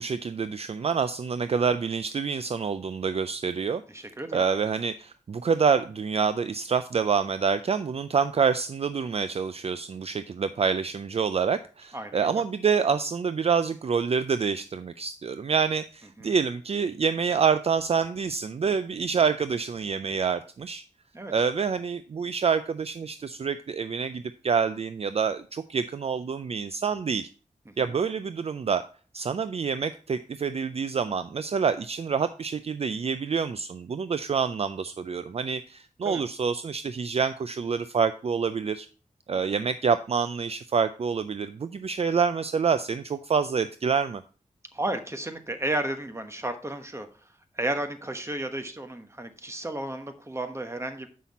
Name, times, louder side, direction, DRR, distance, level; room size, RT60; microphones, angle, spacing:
voice 1, 0.0-3.8 4.3-20.8 21.3-27.3 27.8-28.8 29.1-38.9 39.3-44.2, right 6 dB, 50° right, 12 dB, 0.4 m, -27 dB
voice 2, 3.9-4.4 11.9-12.4 16.2-16.3 21.1-21.3 27.7-27.9 36.0-36.2 39.5-39.6 44.7-47.1 47.5-51.1, right 1 dB, 20° right, 7 dB, 1.1 m, -33 dB
7.4 x 5.7 x 4.1 m, 0.39 s
wide cardioid pair, 85°, 13 cm